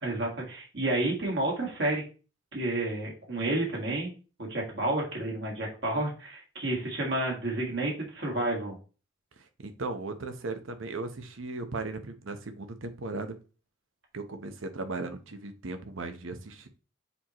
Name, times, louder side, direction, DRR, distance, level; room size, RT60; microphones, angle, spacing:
voice 1, 0.0-2.0 2.5-4.1 4.4-8.7, right 2 dB, 55° right, -2 dB, 1.8 m, -30 dB
voice 2, 9.4-13.3 14.1-16.7, right 3 dB, 80° right, 8 dB, 0.9 m, -37 dB
7.1 x 4.4 x 3.0 m, 0.34 s
head